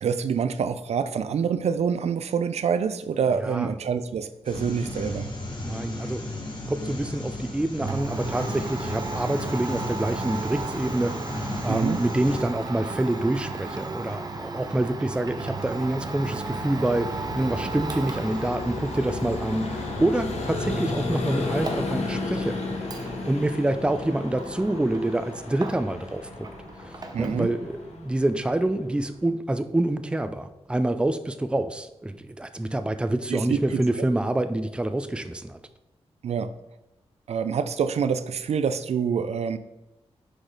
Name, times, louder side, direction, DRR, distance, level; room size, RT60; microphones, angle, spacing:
voice 1, 0.0-5.3 11.7-12.0 27.1-27.5 33.3-34.1 36.2-36.5 37.3-39.6, right 6 dB, 80° right, 12 dB, 0.4 m, -26 dB
voice 2, 3.4-3.7 5.6-6.2 6.7-22.6 23.2-26.5 26.8-35.6, right 1 dB, 10° right, 10 dB, 0.4 m, -27 dB
sound 1, 4.4-12.4, left 1 dB, 45° left, 1.4 m, -34 dB
Domestic sounds home sounds, 7.8-26.1 26.4-27.5, right 3 dB, 35° right, 0.7 m, -36 dB
Vehicle, 14.7-29.2, left 2 dB, 85° left, 1.1 m, -34 dB
6.3 x 4.9 x 3.8 m, 0.94 s
wide cardioid pair, 100°, 11 cm